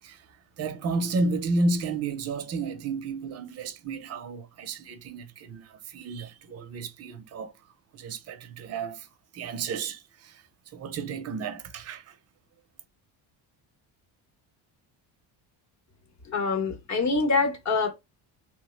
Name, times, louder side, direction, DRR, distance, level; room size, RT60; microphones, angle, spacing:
voice 1, 0.0-7.5 7.9-12.2, right 3 dB, 35° right, 0.5 m, -32 dB
voice 2, 16.2-17.9, left 4 dB, 35° left, 0.9 m, -25 dB
3.1 x 2.1 x 3.0 m
cardioid pair, 130°, 46 cm